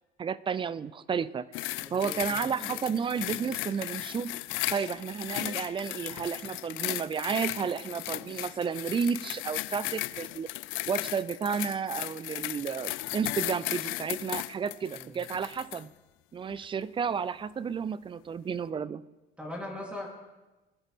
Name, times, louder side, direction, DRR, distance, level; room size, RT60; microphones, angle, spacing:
voice 1, 0.2-4.4 4.7-10.5 10.9-15.9 16.3-19.0, right 6 dB, 25° right, 18 dB, 0.4 m, -32 dB
sound 1, 1.5-15.9 16.5-16.6, left 18 dB, 85° left, 0.4 m, -36 dB
voice 2, 1.8-2.4 14.9-15.2 19.4-20.1, left 1 dB, 5° right, -2 dB, 3.3 m, -40 dB
21.5 x 10.0 x 3.6 m, 1.1 s
cardioid pair, 130°, 20 cm